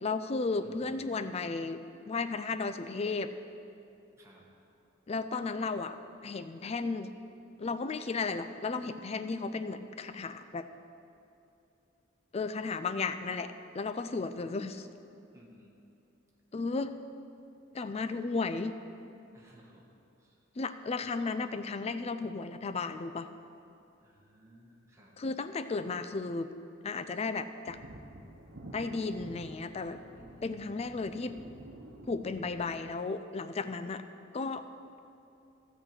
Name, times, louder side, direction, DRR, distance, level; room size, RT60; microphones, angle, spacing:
voice 1, 0.0-1.8 2.1-3.3 5.1-6.0 6.2-7.1 7.6-10.7 12.3-14.9 16.5-16.9 17.7-18.8 20.6-23.3 25.2-26.5 26.8-27.8 28.7-30.0 30.4-31.3 32.1-34.0 34.3-34.6, left 4 dB, 30° left, 10 dB, 0.4 m, -34 dB
voice 2, 0.6-1.0 4.1-4.4 15.3-15.7 19.3-19.8 20.2-20.4 24.0-25.2 30.1-30.6, equal, 15° right, -4 dB, 1.7 m, -56 dB
sound 1, 27.7-32.7, right 1 dB, 70° right, 1.0 m, -50 dB
13.5 x 4.5 x 7.9 m, 2.7 s
head